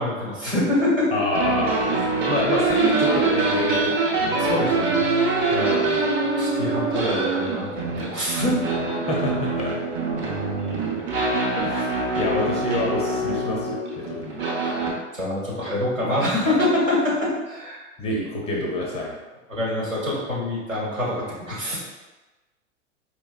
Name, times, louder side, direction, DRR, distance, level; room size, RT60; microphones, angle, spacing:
voice 1, 0.0-1.1 4.4-5.1 6.3-8.6 14.6-14.7 15.1-17.9 19.5-21.8, left 1 dB, 85° right, -6 dB, 1.4 m, -25 dB
voice 2, 1.1-1.8 2.2-4.3 5.5-6.1 9.0-9.8 11.5-14.5 16.4-16.6 18.0-19.1, left 2 dB, 15° left, -1 dB, 0.4 m, -27 dB
sound 1, 1.3-14.9, right 3 dB, 30° right, 0.7 m, -24 dB
4.4 x 2.9 x 2.3 m, 1.2 s
figure-of-eight pair, 85°, 38 cm